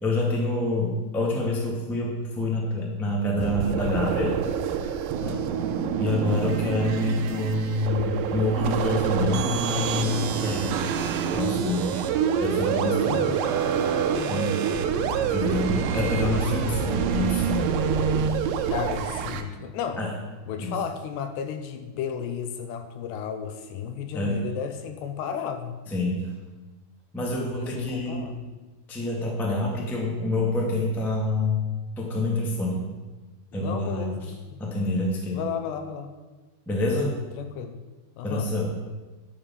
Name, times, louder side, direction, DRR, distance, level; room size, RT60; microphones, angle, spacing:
voice 1, 0.0-4.4 6.0-10.8 11.3-12.0 12.4-13.3 14.3-14.6 15.3-17.7 20.0-20.1 20.6-20.8 24.1-24.4 25.9-26.2 27.1-28.3 28.9-31.6 32.0-32.8 33.5-34.1 34.6-35.4 36.6-37.2 38.2-38.7, left 1 dB, ahead, -2 dB, 0.4 m, -27 dB
sound 1, 3.4-19.4, right 7 dB, 80° right, 3.1 m, -26 dB
voice 2, 13.1-13.4 14.1-14.6 18.7-20.0 20.4-25.7 27.5-28.4 33.5-34.6 35.3-36.1 37.4-37.8 38.2-38.5, left 8 dB, 75° left, 7 dB, 2.7 m, -33 dB
11.5 x 7.3 x 7.3 m, 1.2 s
omnidirectional pair, 5.3 m